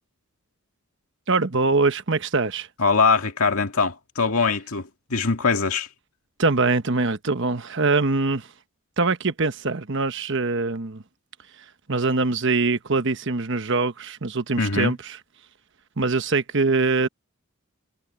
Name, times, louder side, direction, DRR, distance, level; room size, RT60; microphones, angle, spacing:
voice 1, 1.3-2.7 6.4-8.5 9.0-11.0 11.9-15.2 16.0-17.1, right 3 dB, 55° right, 1.2 m, -23 dB
voice 2, 2.8-5.9 14.6-14.9, left 4 dB, 80° left, 2.0 m, -22 dB
head